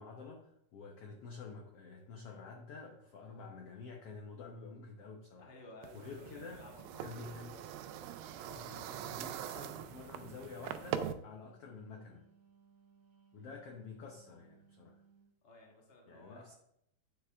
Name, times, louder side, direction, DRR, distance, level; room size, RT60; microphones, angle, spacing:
voice 1, 0.0-5.5 5.9-6.6 7.0-7.6 8.5-12.3 13.3-15.0 16.1-16.5, left 4 dB, 75° left, 1 dB, 1.4 m, -49 dB
voice 2, 5.4-7.8 8.3-9.0 15.4-16.5, left 1 dB, 25° left, -1 dB, 1.3 m, -56 dB
sound 1, 5.8-11.1, right 9 dB, 90° right, 2.4 m, -42 dB
Wind instrument woodwind instrument, 10.2-15.4, right 6 dB, 65° right, 1.0 m, -66 dB
9.7 x 6.8 x 3.5 m, 0.76 s
omnidirectional pair, 4.0 m